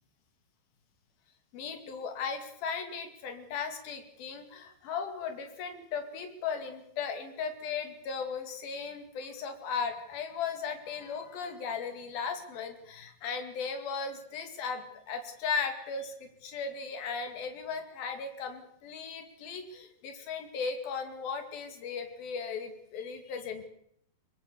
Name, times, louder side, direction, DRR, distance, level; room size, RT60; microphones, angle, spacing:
voice 1, 1.5-23.7, left 5 dB, 70° left, 6 dB, 4.2 m, -37 dB
23.5 x 20.0 x 6.9 m, 0.74 s
omnidirectional pair, 4.4 m